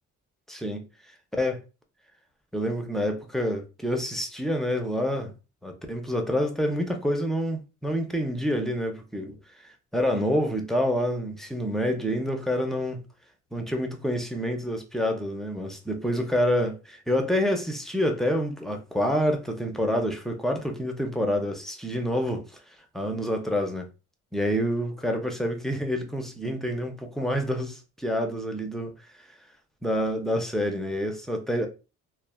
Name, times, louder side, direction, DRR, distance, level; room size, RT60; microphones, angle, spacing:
voice 1, 0.5-0.9 1.3-1.6 2.5-5.3 5.6-13.0 13.5-22.4 22.9-23.9 24.3-28.9 29.2-29.3 29.8-31.7, equal, ahead, 0.6 m, -27 dB
3.2 x 2.1 x 2.2 m
cardioid pair, 90°, 30 cm